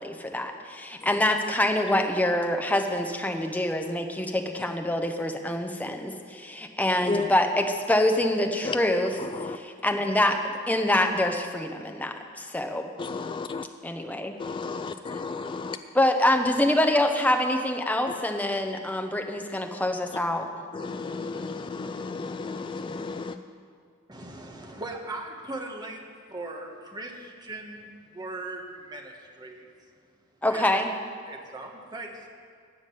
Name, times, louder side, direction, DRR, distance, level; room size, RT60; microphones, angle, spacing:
voice 1, 0.0-9.1 9.5-12.9 13.8-14.3 15.9-20.5 30.4-30.9, left 1 dB, 5° left, 4 dB, 0.8 m, -25 dB
voice 2, 7.0-7.3 8.6-8.8 9.2-9.6 13.0-13.7 14.4-15.8 18.1-18.2 20.7-23.4, left 4 dB, 25° left, 9 dB, 0.3 m, -33 dB
voice 3, 24.1-26.0 26.3-29.7 30.5-30.9 31.3-32.3, right 2 dB, 20° right, 1 dB, 1.3 m, -39 dB
15.0 x 5.2 x 9.3 m, 2.1 s
head